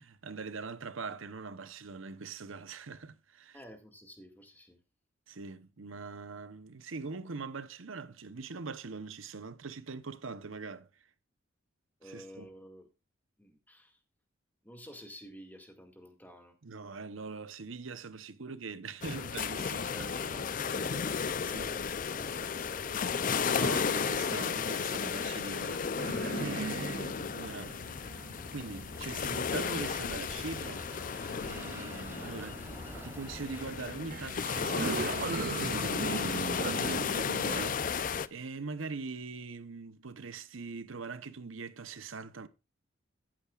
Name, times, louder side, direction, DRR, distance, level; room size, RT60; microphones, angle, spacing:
voice 1, 0.0-3.6 5.3-11.1 12.0-12.5 16.6-20.1 20.8-21.1 21.4-21.7 23.3-27.8 28.5-32.6 33.0-42.5, right 4 dB, 80° right, 0.9 m, -42 dB
voice 2, 3.5-4.8 12.0-12.9 13.4-14.0 14.6-16.5 19.9-23.6, equal, 10° left, 2.0 m, -50 dB
sound 1, 19.0-38.3, left 6 dB, 40° left, 0.5 m, -34 dB
sound 2, 23.4-24.3 25.1-30.5 31.4-33.2 33.8-33.9 34.1-37.7, right 4 dB, 45° right, 0.4 m, -40 dB
sound 3, 27.9-33.7, right 1 dB, 10° right, 0.9 m, -49 dB
14.0 x 8.9 x 2.4 m
head